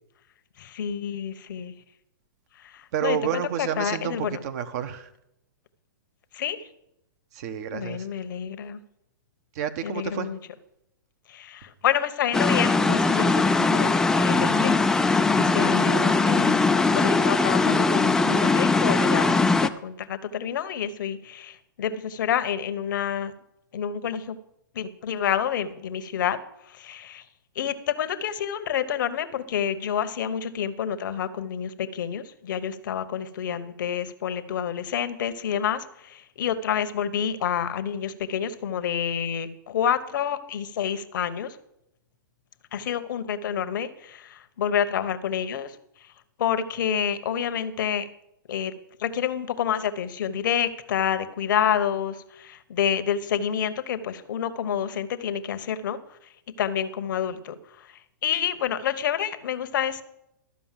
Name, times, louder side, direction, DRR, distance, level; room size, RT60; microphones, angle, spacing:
voice 1, 0.6-1.7 2.6-4.4 6.3-6.7 7.7-8.8 9.8-10.4 11.3-16.6 16.9-23.3 23.7-24.4 24.7-26.4 26.7-27.2 27.6-41.6 42.7-45.8 46.4-48.1 48.5-48.7 49.0-56.0 56.6-57.9 58.2-60.0, left 9 dB, 65° left, 11 dB, 1.0 m, -28 dB
voice 2, 2.9-5.1 7.3-8.1 9.5-10.3, right 9 dB, 50° right, 10 dB, 1.0 m, -30 dB
sound 1, 12.3-19.7, left 3 dB, 5° left, 0.4 m, -21 dB
12.5 x 5.4 x 7.5 m, 0.81 s
hypercardioid pair, 140°, 11 cm